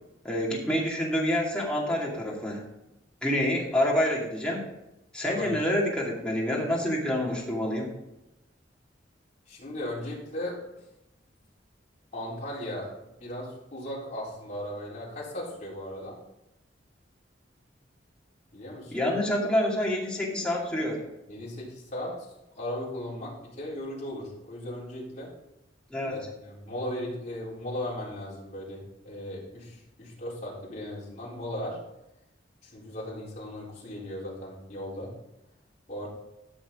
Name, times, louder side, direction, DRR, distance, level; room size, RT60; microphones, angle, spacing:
voice 1, 0.2-2.6 3.2-4.6 5.1-8.0 18.9-21.0 25.9-26.1, left 1 dB, 5° left, -4 dB, 2.4 m, -27 dB
voice 2, 9.5-10.6 12.1-12.9 13.2-16.2 18.5-18.9 21.3-22.3 22.6-25.3 26.0-31.8 32.6-35.2 35.9-36.1, left 1 dB, 40° left, -6 dB, 3.7 m, -37 dB
13.0 x 6.2 x 3.7 m, 0.90 s
head